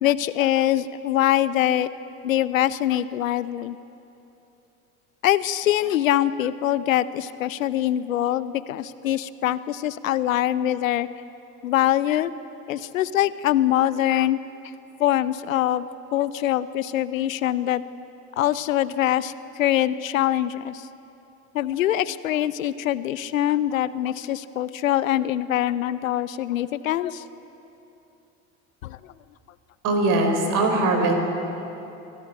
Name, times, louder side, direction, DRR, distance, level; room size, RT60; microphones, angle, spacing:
voice 1, 0.0-1.9 2.2-3.8 5.2-11.1 11.6-12.3 12.7-14.4 15.0-17.8 18.4-20.9 21.5-27.2 28.8-29.1, left 12 dB, 70° left, 16 dB, 0.7 m, -23 dB
voice 2, 29.8-31.1, right 2 dB, 45° right, 4 dB, 4.9 m, -21 dB
24.0 x 17.0 x 8.6 m, 3.0 s
figure-of-eight pair, 65°, 42 cm